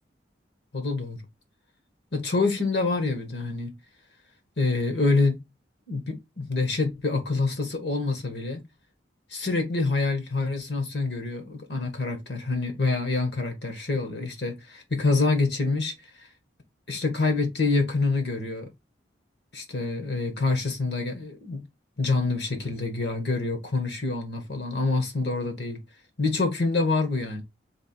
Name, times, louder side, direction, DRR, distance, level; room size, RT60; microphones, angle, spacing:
voice 1, 0.7-1.2 2.1-3.8 4.6-5.4 5.9-8.6 9.3-16.3 16.9-18.7 19.5-21.6 22.0-25.8 26.2-27.4, left 3 dB, 65° left, 1.2 m, -26 dB
3.4 x 2.9 x 4.2 m
head